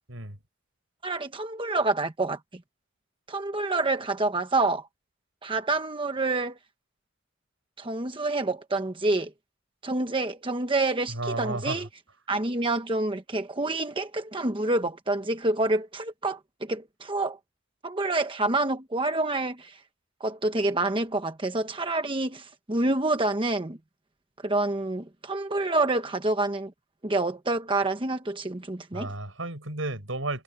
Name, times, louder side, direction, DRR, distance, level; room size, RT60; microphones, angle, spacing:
voice 1, 1.0-2.6 3.3-4.9 5.4-6.6 7.8-9.3 9.8-11.9 12.3-17.4 17.8-19.8 20.2-23.8 24.4-26.7 27.0-29.1, right 2 dB, 25° right, 1.1 m, -27 dB
voice 2, 11.1-11.9 28.9-30.4, right 2 dB, 80° right, 6.5 m, -33 dB
head